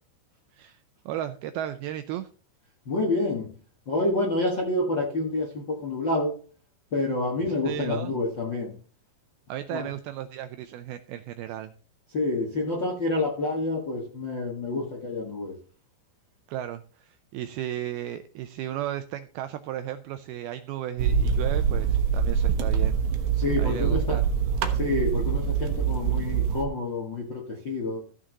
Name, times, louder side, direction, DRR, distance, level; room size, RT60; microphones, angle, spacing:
voice 1, 1.1-2.3 7.5-8.1 9.5-11.7 16.5-23.0 23.6-24.2, right 12 dB, 85° right, 2.2 m, -35 dB
voice 2, 2.8-3.5 3.8-6.4 6.9-8.8 9.7-9.9 12.1-15.6 23.4-24.2 24.7-28.0, left 2 dB, 55° left, 1.2 m, -28 dB
sound 1, 21.0-26.6, right 7 dB, 65° right, 2.0 m, -24 dB
15.0 x 6.3 x 4.0 m
omnidirectional pair, 5.0 m